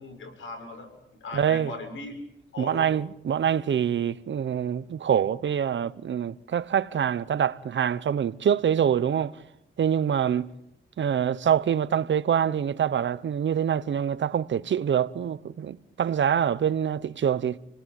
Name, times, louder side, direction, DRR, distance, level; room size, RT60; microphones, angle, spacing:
voice 1, 0.0-2.1 2.5-2.9, left 3 dB, 90° left, 7.1 m, -39 dB
voice 2, 1.3-1.7 2.6-9.4 9.8-10.5 11.0-17.6, right 8 dB, 70° right, 1.0 m, -25 dB
29.5 x 19.5 x 9.3 m
cardioid pair, 80°, 20 cm